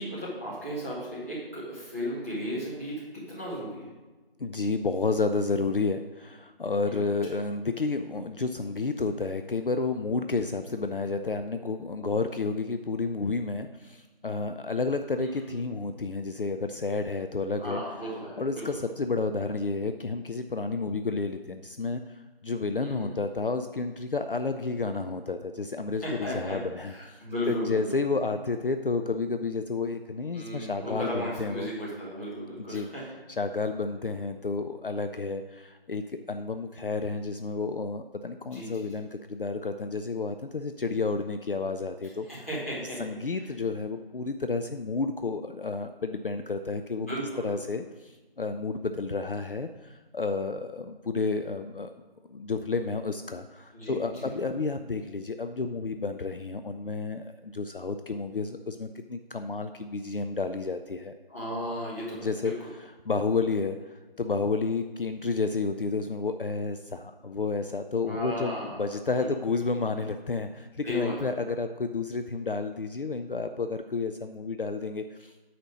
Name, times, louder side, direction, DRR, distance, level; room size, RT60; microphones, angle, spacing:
voice 1, 0.0-3.9 6.9-7.0 15.2-15.6 17.6-18.6 22.8-23.1 26.0-28.0 30.3-33.0 38.5-38.9 42.2-43.0 43.4-43.5 47.1-47.5 53.7-54.4 61.3-62.7 68.1-68.9 69.2-69.3 70.8-71.3, equal, 15° left, -10 dB, 1.8 m, -35 dB
voice 2, 4.4-17.8 18.4-31.7 32.7-32.9 33.3-42.5 43.0-47.1 47.4-51.9 52.3-61.1 62.2-75.4, left 4 dB, 65° left, 8 dB, 0.5 m, -31 dB
9.2 x 4.3 x 6.2 m, 1.2 s
figure-of-eight pair, 170°, 30 cm